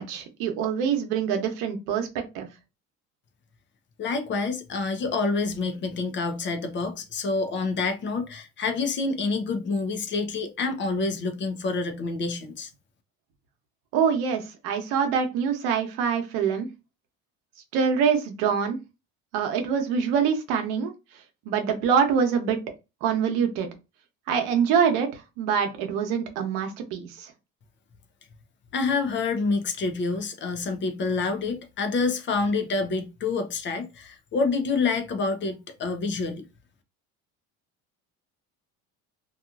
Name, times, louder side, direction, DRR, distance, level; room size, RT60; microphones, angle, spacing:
voice 1, 0.0-2.5 13.9-16.7 17.7-18.8 19.3-20.9 21.4-22.6 23.0-23.7 24.3-27.3, right 7 dB, 85° right, 0.9 m, -25 dB
voice 2, 4.0-12.7 28.7-36.4, left 4 dB, 35° left, 0.6 m, -27 dB
2.8 x 2.4 x 2.4 m
cardioid pair, 120°, 32 cm